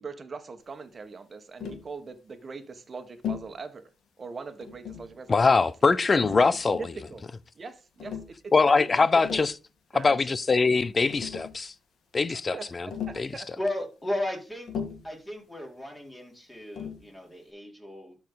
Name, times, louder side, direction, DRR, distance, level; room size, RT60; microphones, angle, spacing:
voice 1, 0.0-3.8 4.2-5.3 5.8-5.9 6.8-7.2 7.5-8.4 8.7-8.9 9.3-9.4 9.9-10.3 12.3-12.7 13.1-13.5, right 4 dB, 40° right, 1.4 m, -41 dB
Tap, 1.6-1.9 3.2-3.6 4.6-5.2 6.2-7.0 8.0-8.3 9.0-9.6 10.7-10.8 11.1-11.6 12.9-13.3 14.7-15.1 16.8-17.1, left 7 dB, 75° left, 2.1 m, -37 dB
voice 2, 5.3-6.9 8.5-9.5 9.9-11.7 12.1-12.9 13.2-13.3, left 4 dB, 35° left, 0.6 m, -23 dB
voice 3, 13.6-14.7 15.0-18.2, left 1 dB, 10° left, 4.1 m, -35 dB
12.0 x 4.7 x 3.9 m
cardioid pair, 80°, 0 cm